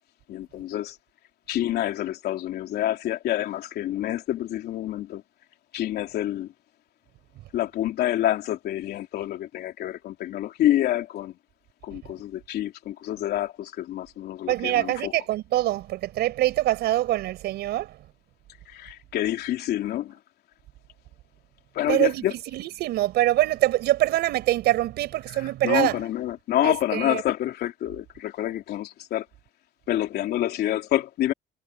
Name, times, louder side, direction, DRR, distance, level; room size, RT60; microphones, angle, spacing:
voice 1, 0.3-1.0 1.5-5.2 5.7-6.5 7.5-11.4 11.8-15.1 18.7-20.2 21.7-22.3 25.3-29.3 29.9-31.3, left 13 dB, 70° left, 3.1 m, -27 dB
voice 2, 14.5-18.0 21.9-22.2 22.5-26.0 26.6-27.2, right 15 dB, 80° right, 5.3 m, -24 dB
cardioid pair, 110°, 17 cm